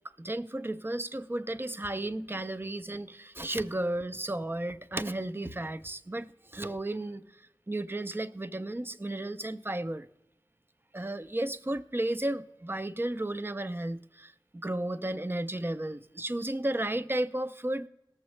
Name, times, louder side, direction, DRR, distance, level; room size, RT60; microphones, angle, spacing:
voice 1, 0.2-6.3 6.5-7.2 7.7-10.1 10.9-14.3 14.6-17.9, right 1 dB, 25° right, 0.6 m, -33 dB
19.0 x 7.1 x 3.2 m
wide cardioid pair, 60°, 9 cm